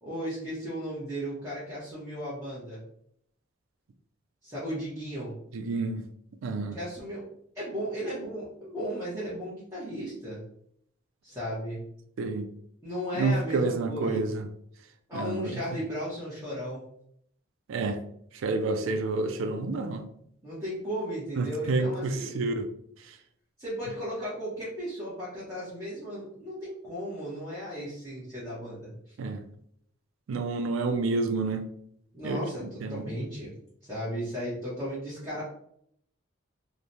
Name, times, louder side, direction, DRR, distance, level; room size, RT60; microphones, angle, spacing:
voice 1, 0.0-2.8 4.4-5.3 6.7-7.2 7.5-10.4 11.2-11.8 12.8-14.3 15.1-16.8 20.4-22.4 23.6-29.1 32.1-33.5 33.8-35.4, equal, 15° right, 0.8 m, -35 dB
voice 2, 5.5-6.0 6.4-6.8 12.2-12.5 13.1-14.5 15.1-15.6 17.7-18.0 18.4-20.0 21.4-22.7 29.2-29.4 30.3-31.6 32.2-32.4 32.8-33.0, right 3 dB, 80° right, 0.4 m, -29 dB
3.1 x 2.1 x 2.6 m
head